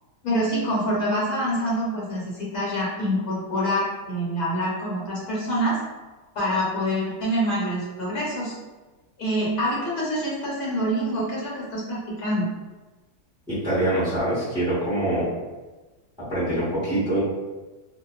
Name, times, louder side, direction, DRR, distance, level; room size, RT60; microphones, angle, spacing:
voice 1, 0.2-5.8 6.3-8.5 9.2-12.4, equal, 70° left, -6 dB, 1.3 m, -26 dB
voice 2, 13.5-15.3 16.3-17.2, right 1 dB, 5° right, -12 dB, 0.9 m, -24 dB
2.5 x 2.4 x 2.3 m, 1.2 s
omnidirectional pair, 1.7 m